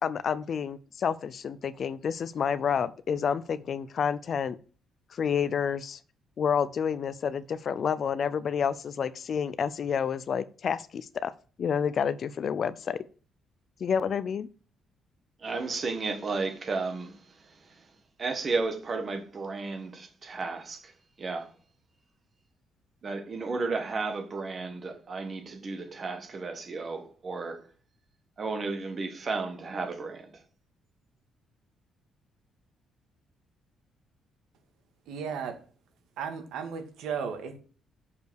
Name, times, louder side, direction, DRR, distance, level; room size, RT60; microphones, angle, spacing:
voice 1, 0.0-4.6 5.1-6.0 6.4-11.3 11.6-13.0 13.8-14.5, left 7 dB, 40° left, 0.5 m, -29 dB
voice 2, 15.4-17.8 18.2-20.9 21.2-21.5 23.0-27.6 28.4-30.3, right 3 dB, 30° right, 1.5 m, -33 dB
voice 3, 35.1-35.6 36.2-37.6, right 6 dB, 85° right, 1.8 m, -35 dB
6.8 x 5.4 x 6.3 m
cardioid pair, 175°, 0 cm